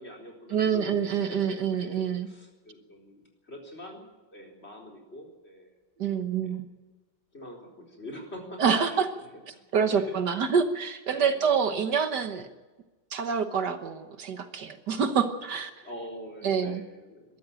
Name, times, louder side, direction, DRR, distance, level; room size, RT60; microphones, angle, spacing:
voice 1, 0.0-6.6 7.3-9.0 9.5-10.2 11.1-11.6 15.8-17.4, equal, 35° left, 1 dB, 4.4 m, -45 dB
voice 2, 0.5-2.3 6.0-6.7 8.6-9.1 9.7-12.5 13.1-15.7 16.4-16.8, right 6 dB, 65° right, 8 dB, 1.7 m, -26 dB
22.5 x 13.5 x 8.8 m, 1.2 s
omnidirectional pair, 2.0 m